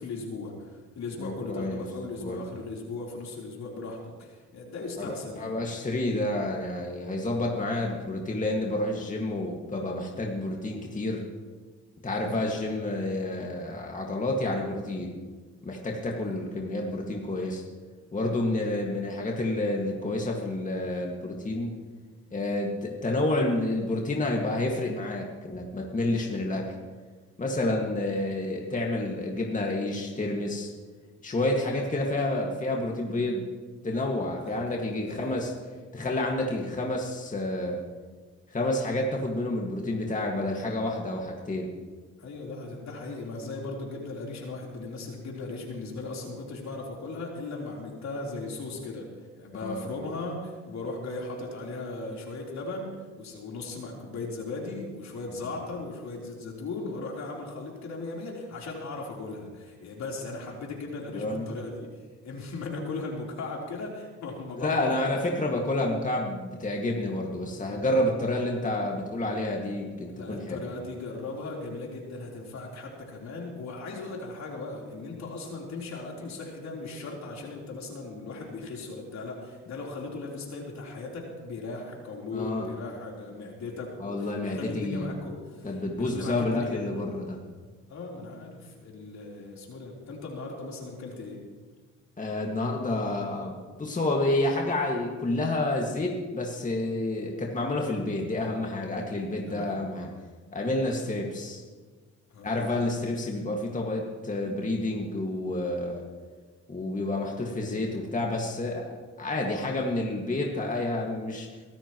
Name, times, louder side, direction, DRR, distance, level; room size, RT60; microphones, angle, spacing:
voice 1, 0.0-5.6 12.2-12.5 16.1-16.4 34.4-35.4 42.2-49.1 49.4-61.9 62.2-64.9 70.1-87.1 87.9-91.4 99.5-99.8 102.3-102.6, left 3 dB, 65° left, -2 dB, 3.9 m, -37 dB
voice 2, 1.2-1.8 2.2-2.4 5.0-11.2 12.0-15.2 15.6-17.6 18.1-21.7 22.3-26.7 27.4-30.7 31.2-33.5 33.8-35.5 35.9-37.8 38.5-41.7 49.6-49.8 61.1-61.5 64.6-70.6 82.3-82.7 84.0-85.2 85.6-87.4 92.2-100.1 100.5-101.6 102.4-106.0 106.7-111.5, left 2 dB, 25° left, -1 dB, 2.0 m, -29 dB
23.0 x 13.0 x 3.1 m, 1.4 s
cardioid pair, 90°, 30 cm